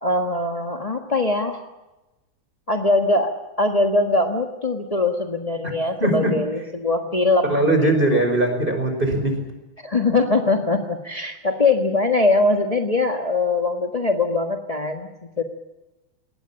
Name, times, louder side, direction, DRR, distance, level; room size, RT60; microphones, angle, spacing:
voice 1, 0.0-1.6 2.7-8.2 9.8-15.4, left 2 dB, 35° left, 3 dB, 0.5 m, -22 dB
voice 2, 6.0-6.3 7.4-9.3, right 2 dB, 15° right, 4 dB, 5.5 m, -20 dB
21.0 x 18.5 x 10.0 m, 1.0 s
omnidirectional pair, 3.3 m